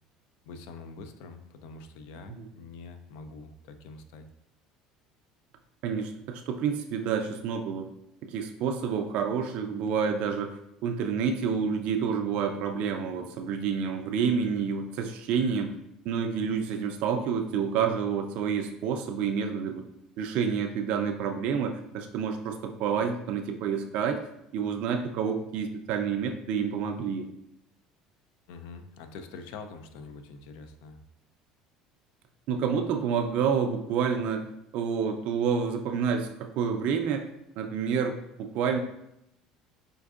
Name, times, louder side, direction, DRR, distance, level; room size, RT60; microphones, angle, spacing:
voice 1, 0.4-4.3 28.5-31.0, left 4 dB, 80° left, 8 dB, 0.4 m, -45 dB
voice 2, 5.8-7.9 8.2-15.7 16.1-19.8 20.2-24.2 24.5-27.3 32.5-34.5 34.7-37.3 37.6-38.8, right 6 dB, 65° right, 5 dB, 0.3 m, -29 dB
4.4 x 2.5 x 2.4 m, 0.82 s
cardioid pair, 120°, 2 cm